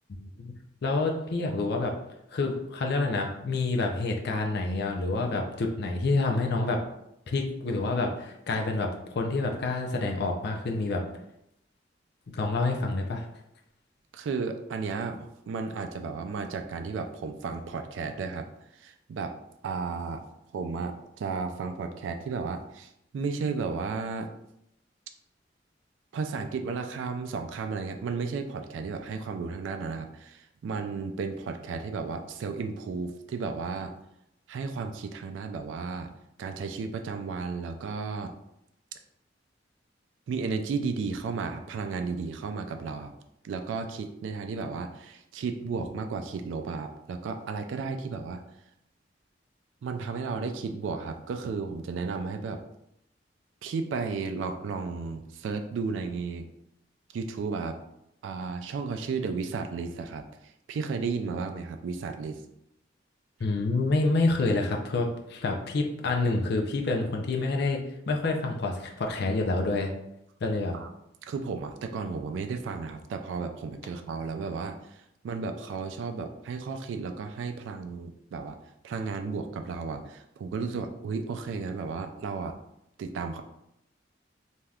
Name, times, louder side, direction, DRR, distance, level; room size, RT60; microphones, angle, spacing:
voice 1, 0.1-0.5 0.8-1.9 2.3-6.8 7.3-11.0 12.3-13.2 63.4-67.8 68.1-69.9 70.4-70.7, left 3 dB, 60° left, 2 dB, 0.5 m, -28 dB
voice 2, 14.1-18.5 18.7-19.3 19.6-20.2 20.5-24.3 26.1-33.9 34.5-36.1 36.4-38.3 40.3-43.1 43.4-48.4 49.8-52.6 53.6-56.5 57.1-57.8 58.2-60.2 60.7-62.4 70.7-70.9 71.2-78.6 78.8-82.6 83.0-83.4, right 4 dB, 85° right, 6 dB, 0.3 m, -33 dB
3.3 x 2.7 x 2.3 m, 0.81 s
head